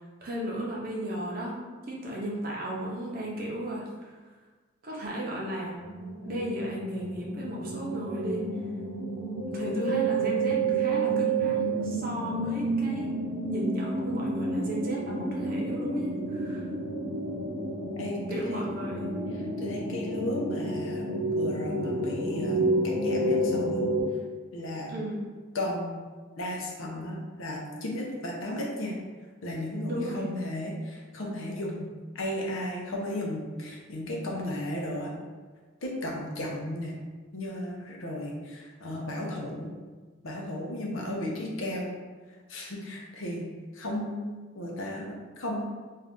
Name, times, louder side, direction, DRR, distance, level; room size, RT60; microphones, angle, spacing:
voice 1, 0.2-1.6 1.9-4.1 4.8-5.7 6.2-8.4 9.5-13.1 13.5-16.7 18.3-19.1 24.9-25.2 29.9-30.2, right 1 dB, 45° right, -3 dB, 0.7 m, -34 dB
sound 1, 5.8-24.0, right 2 dB, 90° right, 0.8 m, -30 dB
voice 2, 18.0-18.6 19.6-23.8 24.5-24.9 25.5-26.0 26.4-29.0 29.4-31.9 32.1-35.1 35.8-37.0 37.3-39.7 40.2-41.9 42.5-43.5 43.7-45.6, left 1 dB, 85° left, -1 dB, 0.7 m, -34 dB
2.6 x 2.4 x 3.5 m, 1.4 s
head